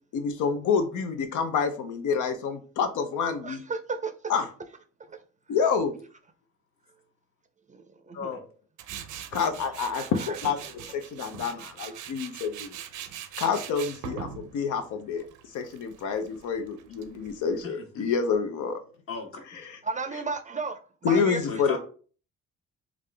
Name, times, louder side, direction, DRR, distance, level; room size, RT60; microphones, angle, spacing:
voice 1, 0.1-3.6 4.3-4.5 5.5-6.0 8.1-8.5 9.3-12.8 13.4-15.2 15.5-18.8 19.7-19.8 21.0-21.8, left 6 dB, 75° left, 0.6 m, -28 dB
voice 2, 3.4-4.4 7.7-8.4 10.0-10.4 11.8-11.9 19.8-21.4, right 4 dB, 25° right, 0.4 m, -34 dB
Tools, 8.8-17.6, right 9 dB, 80° right, 0.5 m, -42 dB
voice 3, 17.6-18.1 19.1-19.4 21.5-21.8, left 4 dB, 45° left, 1.3 m, -37 dB
3.5 x 2.5 x 3.3 m
cardioid pair, 90°, 30 cm